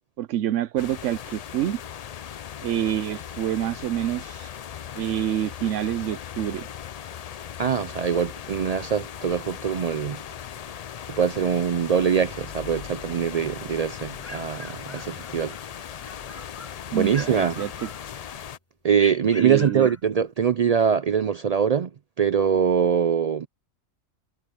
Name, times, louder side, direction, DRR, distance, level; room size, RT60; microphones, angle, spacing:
voice 1, 0.2-1.8 2.6-4.5 5.0-6.7 16.9-17.9 19.4-19.9, right 11 dB, 90° right, 1.0 m, -27 dB
sound 1, 0.8-18.6, left 9 dB, 70° left, 0.3 m, -38 dB
voice 2, 7.6-10.2 11.1-15.5 16.9-17.6 18.8-21.9 22.2-23.5, right 7 dB, 70° right, 0.3 m, -23 dB
sound 2, 14.2-15.6 16.0-16.8 17.1-18.4 18.9-20.0, left 1 dB, 15° left, 0.8 m, -42 dB
omnidirectional pair, 1.3 m